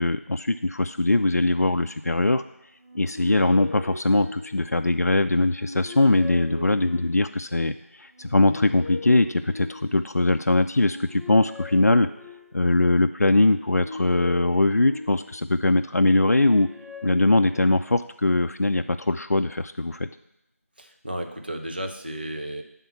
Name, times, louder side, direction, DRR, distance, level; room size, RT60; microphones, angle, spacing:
voice 1, 0.0-2.4 2.9-12.1 12.5-16.7 17.0-20.1, left 2 dB, 90° left, 8 dB, 0.3 m, -21 dB
sound 1, 2.8-4.9 5.4-7.4 8.1-10.2 10.7-12.7 13.4-15.6 16.0-18.1, left 2 dB, 80° right, 1.5 m, -40 dB
voice 2, 20.8-22.6, right 1 dB, 40° right, 4 dB, 0.7 m, -33 dB
8.4 x 3.6 x 5.7 m, 0.84 s
figure-of-eight pair, 170°, 8 cm